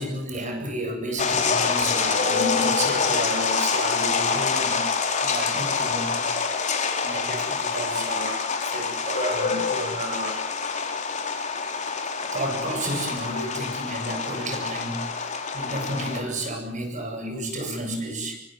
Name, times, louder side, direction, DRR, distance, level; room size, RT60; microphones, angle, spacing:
voice 1, 0.0-4.8 5.2-6.3 6.6-10.5 12.3-18.3, right 1 dB, 40° right, 4 dB, 8.0 m, -31 dB
sound 1, 1.2-16.2, left 5 dB, 40° left, 4.2 m, -26 dB
26.0 x 24.5 x 8.0 m, 0.72 s
head